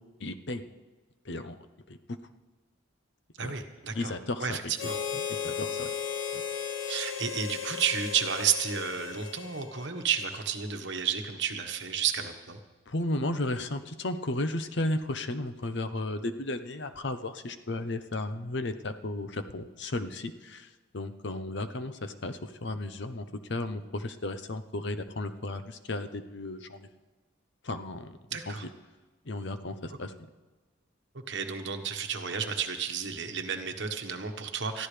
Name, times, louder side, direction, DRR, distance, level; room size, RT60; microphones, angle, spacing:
voice 1, 0.2-0.6 1.2-1.5 1.9-2.0 3.4-3.5 3.9-4.9 5.3-5.9 6.3-6.4 12.9-26.9 27.6-28.1 28.5-28.6 29.2-30.1, left 2 dB, 55° left, 10 dB, 0.8 m, -34 dB
voice 2, 3.4-4.1 4.4-5.0 6.9-12.6 28.3-28.6 31.3-34.9, right 7 dB, 60° right, 6 dB, 1.3 m, -31 dB
Harmonica, 4.8-10.3, left 7 dB, 75° left, 1.2 m, -36 dB
21.5 x 14.0 x 3.4 m, 1.3 s
head